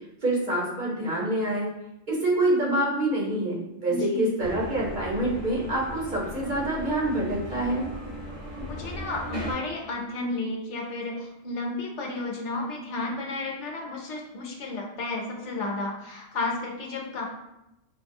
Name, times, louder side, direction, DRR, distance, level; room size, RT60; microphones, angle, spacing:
voice 1, 0.2-1.7 2.1-7.9, right 1 dB, 40° right, -5 dB, 1.2 m, -26 dB
voice 2, 3.9-4.4 8.5-17.2, left 2 dB, 65° left, 0 dB, 1.1 m, -32 dB
sound 1, 4.4-9.5, right 1 dB, 75° right, 1.5 m, -37 dB
5.8 x 2.3 x 2.7 m, 0.90 s
omnidirectional pair, 1.4 m